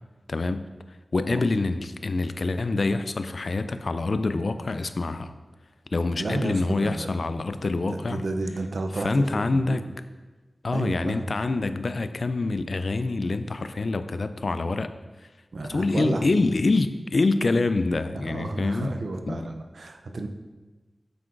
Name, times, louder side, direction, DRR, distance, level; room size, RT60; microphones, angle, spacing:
voice 1, 0.3-0.6 1.1-5.3 5.9-8.2 9.0-9.8 10.6-14.9 15.7-18.9 19.3-19.5, left 3 dB, 65° left, 11 dB, 0.3 m, -26 dB
voice 2, 6.2-7.3 7.9-9.3 9.5-10.0 10.7-11.3 15.5-16.5 18.3-20.3, right 2 dB, 80° right, 5 dB, 0.5 m, -32 dB
7.6 x 5.8 x 2.5 m, 1.3 s
wide cardioid pair, 75°, 0 cm